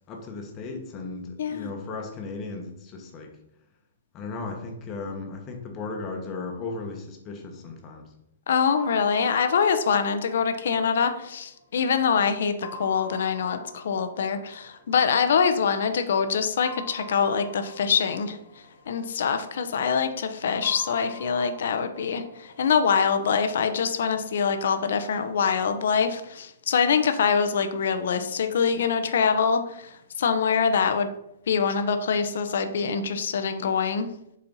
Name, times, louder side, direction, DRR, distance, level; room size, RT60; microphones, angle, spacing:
voice 1, 0.1-3.3 4.1-8.0, left 3 dB, 25° left, 3 dB, 1.2 m, -36 dB
voice 2, 1.4-1.7 8.5-18.4 18.9-31.1 31.5-34.1, left 6 dB, 70° left, 8 dB, 0.7 m, -24 dB
sound 1, 8.6-12.0 12.6-15.5 16.6-19.7 20.6-23.7, left 1 dB, ahead, 1.4 m, -46 dB
7.1 x 4.3 x 4.0 m, 0.80 s
hypercardioid pair, 155°, 0 cm